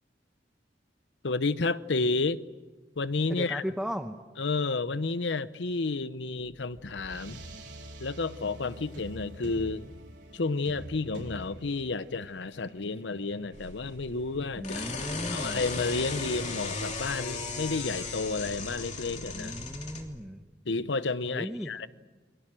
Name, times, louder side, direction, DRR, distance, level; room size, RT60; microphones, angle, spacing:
voice 1, 1.2-2.4 3.0-3.6 4.4-7.4 8.0-9.9 10.3-14.9 15.3-19.5 20.7-21.9, left 3 dB, 85° left, 0.8 m, -31 dB
voice 2, 3.3-4.2 14.6-15.6 19.3-20.5 21.3-21.7, equal, 5° right, 0.9 m, -36 dB
sound 1, 6.2-16.6, right 1 dB, 80° right, 4.6 m, -48 dB
sound 2, 13.5-20.0, left 4 dB, 40° left, 3.0 m, -37 dB
29.5 x 22.0 x 7.6 m
head